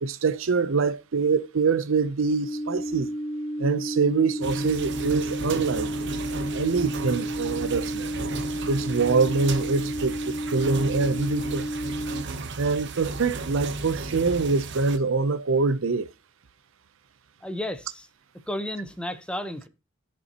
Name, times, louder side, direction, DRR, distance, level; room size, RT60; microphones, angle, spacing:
voice 1, 0.0-3.1 3.6-5.9 6.5-8.1 8.7-11.6 12.6-16.1, right 4 dB, 85° right, 0.6 m, -24 dB
sound 1, 2.2-12.2, right 1 dB, 55° left, 1.2 m, -32 dB
sound 2, 4.4-15.0, right 3 dB, 60° right, 0.9 m, -34 dB
voice 2, 17.4-18.1 18.3-19.7, left 1 dB, 5° left, 0.9 m, -33 dB
15.5 x 6.9 x 2.9 m
head